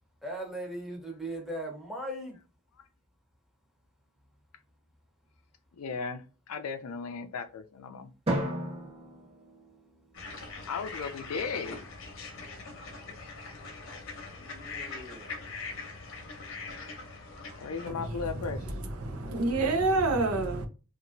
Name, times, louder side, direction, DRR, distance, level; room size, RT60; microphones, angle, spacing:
voice 1, 0.2-2.4 14.4-15.4, right 1 dB, ahead, 0.7 m, -39 dB
voice 2, 5.7-8.1 10.7-11.8 17.6-18.8, left 5 dB, 85° left, 0.4 m, -36 dB
Drum, 8.3-10.6, right 1 dB, 25° right, 0.9 m, -34 dB
sound 1, 10.1-17.9, left 4 dB, 60° left, 0.7 m, -42 dB
voice 3, 19.0-20.7, right 3 dB, 85° right, 0.6 m, -27 dB
2.9 x 2.5 x 2.6 m
head